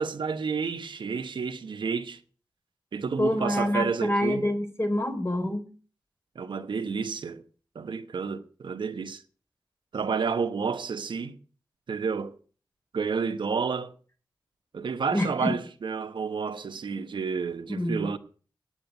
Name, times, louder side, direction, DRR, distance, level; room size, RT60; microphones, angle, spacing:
voice 1, 0.0-2.2 2.9-4.5 6.3-7.4 7.7-9.2 9.9-11.4 11.9-12.3 12.9-13.9 14.7-18.2, right 5 dB, 85° right, 1.1 m, -30 dB
voice 2, 3.2-5.7 15.1-15.6 17.7-18.1, left 1 dB, 35° left, 4.2 m, -27 dB
9.0 x 8.8 x 9.6 m
cardioid pair, 50°, 8 cm